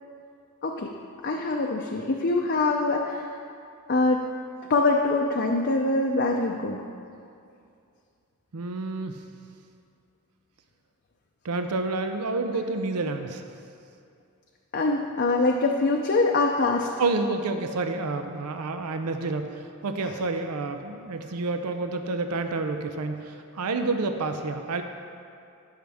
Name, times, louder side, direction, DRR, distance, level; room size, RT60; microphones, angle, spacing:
voice 1, 1.2-3.4 3.9-4.2 4.7-6.8 14.7-16.9 20.0-20.2, left 3 dB, 45° left, 0 dB, 0.6 m, -24 dB
voice 2, 8.5-9.2 11.4-13.4 17.0-24.8, right 3 dB, 85° right, 7 dB, 0.6 m, -29 dB
16.0 x 6.4 x 3.5 m, 2.4 s
head